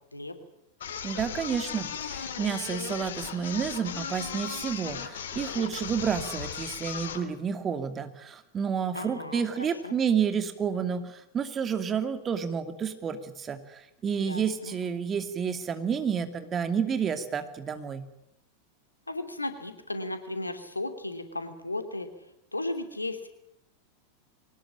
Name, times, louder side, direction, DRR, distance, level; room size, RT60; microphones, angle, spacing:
sound 1, 0.8-7.3, left 8 dB, 65° left, 2.5 m, -37 dB
voice 1, 1.0-18.1, right 7 dB, 25° right, 9 dB, 2.5 m, -30 dB
voice 2, 8.9-9.9 14.2-14.8 19.1-22.1 22.5-23.3, left 2 dB, 85° left, 8 dB, 2.9 m, -35 dB
23.5 x 19.5 x 8.8 m, 0.79 s
figure-of-eight pair, 90°, 0 cm